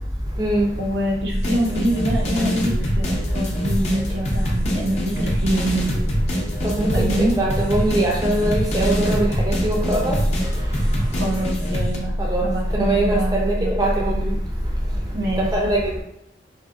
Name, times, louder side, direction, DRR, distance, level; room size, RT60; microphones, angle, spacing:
voice 1, 0.8-5.9 6.9-7.3 11.1-12.1 12.4-13.8 15.1-15.5, equal, 70° right, 0.7 m, -26 dB
sound 1, 1.3-12.0, equal, 35° left, 0.5 m, -24 dB
voice 2, 6.6-7.1 7.3-10.2 12.2-12.4 12.8-14.3 15.4-15.8, right 1 dB, 20° right, 0.5 m, -21 dB
2.7 x 2.6 x 2.5 m
head